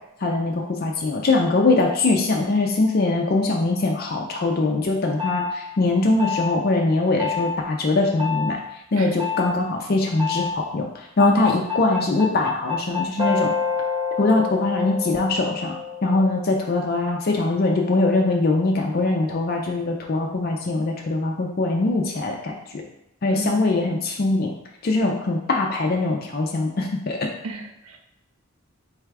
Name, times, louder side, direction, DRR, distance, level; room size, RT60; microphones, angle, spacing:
voice 1, 0.2-8.6 8.9-13.5 14.2-15.7 16.0-22.8 23.2-24.5 24.8-27.2, left 2 dB, 45° left, 1 dB, 0.4 m, -22 dB
sound 1, 5.2-5.5 6.2-6.6 7.2-7.6 8.2-8.5 9.2-9.5 10.2-10.6 11.2-16.3, left 6 dB, 20° right, 0.7 m, -27 dB
voice 2, 23.3-24.0 27.4-28.0, right 3 dB, 85° right, 3 dB, 0.5 m, -35 dB
4.0 x 2.3 x 4.6 m, 0.84 s
head